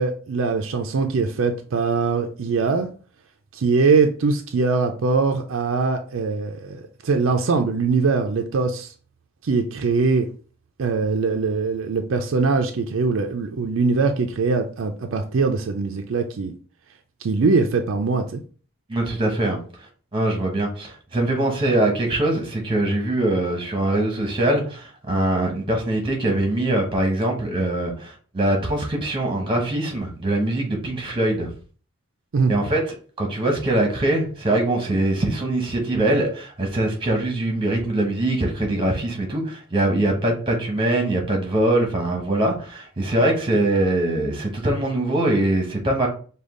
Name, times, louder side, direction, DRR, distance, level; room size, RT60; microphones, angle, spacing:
voice 1, 0.0-2.9 3.5-8.9 9.4-10.3 10.8-16.5 17.2-18.4 32.3-32.5, right 4 dB, 65° right, 0.4 m, -22 dB
voice 2, 18.9-19.6 20.1-31.5 32.5-32.8 33.2-46.1, right 1 dB, 25° right, 1.0 m, -22 dB
5.1 x 2.3 x 3.7 m
head